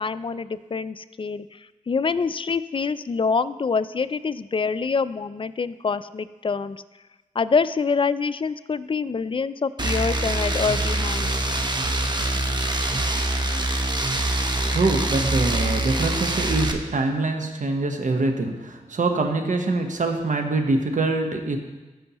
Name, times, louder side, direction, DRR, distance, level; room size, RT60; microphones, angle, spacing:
voice 1, 0.0-1.6 1.9-6.8 7.4-11.3, left 5 dB, 40° left, 15 dB, 0.4 m, -25 dB
sound 1, 9.8-16.7, right 1 dB, 30° right, 1.0 m, -24 dB
voice 2, 14.7-21.6, right 3 dB, 65° right, 4 dB, 1.1 m, -24 dB
14.0 x 5.5 x 3.0 m, 1.2 s
cardioid pair, 40°, 14 cm